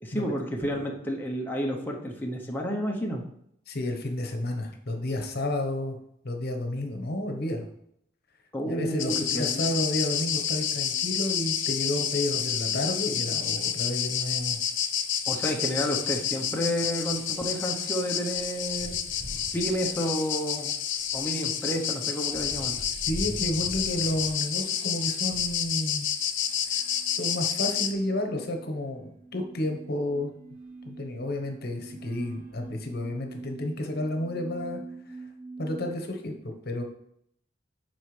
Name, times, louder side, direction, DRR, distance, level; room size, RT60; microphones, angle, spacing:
voice 1, 0.0-3.2 8.5-9.8 15.3-19.0 19.5-20.7 21.1-22.8, equal, 10° left, -1 dB, 0.8 m, -30 dB
voice 2, 3.7-6.0 6.2-7.7 8.7-14.6 23.1-26.1 26.7-30.3 30.8-34.8 35.6-36.8, left 1 dB, 60° left, 4 dB, 1.1 m, -31 dB
sound 1, 9.0-27.9, left 9 dB, 85° left, 0.7 m, -29 dB
sound 2, 15.2-15.4 15.7-15.8 16.2-25.7 26.4-27.7 28.4-28.5 28.8-28.9 30.5-30.7 31.3-31.5 32.0-33.2, equal, 50° right, 1.0 m, -45 dB
sound 3, 26.4-35.9, right 3 dB, 35° right, 2.8 m, -45 dB
11.0 x 4.3 x 3.3 m, 0.72 s
head